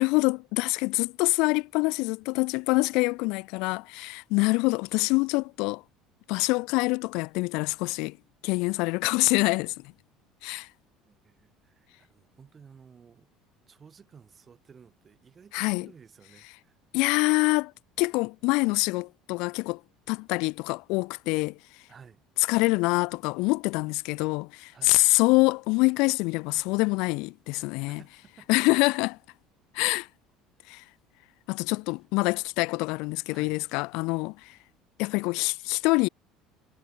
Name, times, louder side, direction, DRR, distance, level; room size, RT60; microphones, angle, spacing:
voice 1, 0.0-5.8 6.3-8.2 8.4-9.7 10.4-10.7 15.5-15.9 16.9-17.7 18.0-19.8 20.1-21.6 22.4-28.0 28.5-29.2 29.7-30.1 30.7-30.8 31.5-34.6 35.0-36.1, left 26 dB, 65° left, 1.1 m, -25 dB
voice 2, 11.0-13.3 13.7-16.8 21.9-22.2 24.7-25.0 27.9-28.5 33.3-33.6, right 6 dB, 20° right, 6.0 m, -54 dB
cardioid pair, 160°, 0 cm